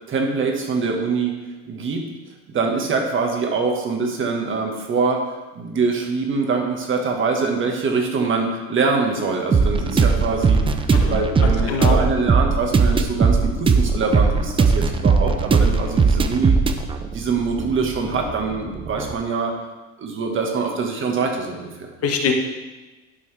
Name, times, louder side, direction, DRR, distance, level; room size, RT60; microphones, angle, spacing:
voice 1, 0.1-1.3 1.6-2.0 2.5-5.2 5.5-10.6 11.0-16.6 17.1-19.5 20.0-21.9, right 4 dB, 30° right, 2 dB, 1.6 m, -24 dB
sound 1, 9.5-19.1, right 4 dB, 15° right, 0.4 m, -19 dB
voice 2, 10.9-12.0 22.0-22.3, left 5 dB, 40° left, 3 dB, 1.3 m, -24 dB
11.5 x 5.3 x 3.4 m, 1.2 s
supercardioid pair, 115°, 37 cm